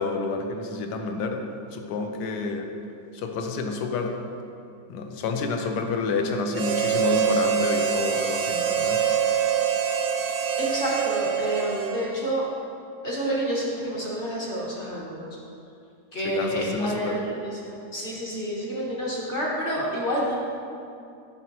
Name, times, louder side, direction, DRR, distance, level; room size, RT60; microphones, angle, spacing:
voice 1, 0.0-1.4 1.7-2.7 3.1-4.2 4.9-9.0 16.2-17.2, left 4 dB, 75° left, 4 dB, 1.2 m, -29 dB
Harmonica, 6.5-12.3, right 8 dB, 85° right, 1.2 m, -25 dB
voice 2, 10.6-12.5 13.0-15.3 16.1-20.4, equal, 40° left, -4 dB, 1.0 m, -29 dB
8.1 x 5.6 x 3.0 m, 2.5 s
omnidirectional pair, 1.9 m